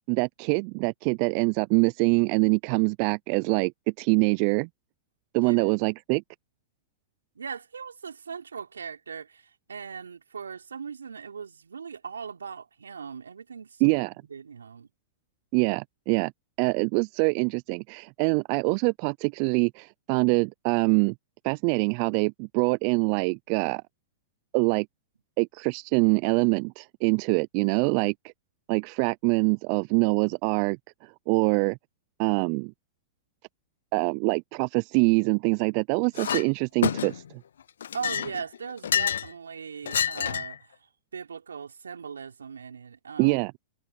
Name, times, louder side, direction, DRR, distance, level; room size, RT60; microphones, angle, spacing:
voice 1, 0.1-3.7 4.0-4.7 5.3-6.2 13.8-14.1 15.5-16.3 16.6-21.1 21.4-23.8 24.5-24.9 25.4-28.1 28.7-31.8 32.2-32.7 33.9-37.4 43.2-43.5, right 35 dB, 50° right, 0.4 m, -24 dB
voice 2, 5.3-5.7 7.3-14.0 14.3-14.9 37.9-40.8 41.1-43.4, right 6 dB, 85° right, 4.7 m, -39 dB
Chink clink, 36.2-36.5 36.8-37.3 37.8-39.3 39.9-40.6, left 8 dB, 75° left, 0.6 m, -28 dB
hypercardioid pair, 105°, 0 cm